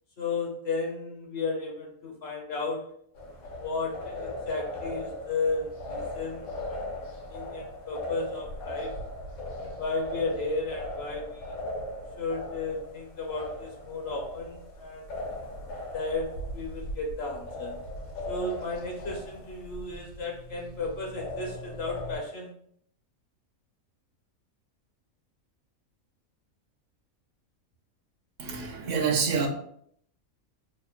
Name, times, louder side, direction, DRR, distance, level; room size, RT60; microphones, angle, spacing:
voice 1, 0.2-2.9 3.6-6.8 7.3-9.0 9.6-11.6 12.2-15.1 15.9-17.7 18.3-22.5, left 3 dB, 55° left, 0.8 m, -34 dB
sound 1, 3.1-22.2, left 1 dB, 75° left, 1.3 m, -39 dB
voice 2, 28.4-29.5, right 5 dB, 70° right, 0.9 m, -27 dB
3.3 x 2.1 x 4.2 m
omnidirectional pair, 1.4 m